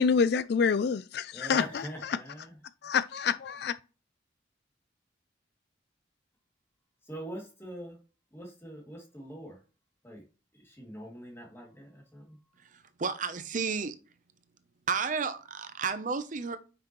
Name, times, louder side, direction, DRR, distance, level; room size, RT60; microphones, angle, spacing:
voice 1, 0.0-1.8 2.8-3.7, left 6 dB, 55° left, 0.4 m, -27 dB
voice 2, 1.3-2.6 7.0-8.0 8.3-9.6 10.0-10.2 10.5-12.4, equal, 15° left, 2.5 m, -43 dB
voice 3, 12.6-13.9 14.9-16.6, right 5 dB, 45° right, 0.7 m, -32 dB
9.6 x 6.0 x 3.1 m
head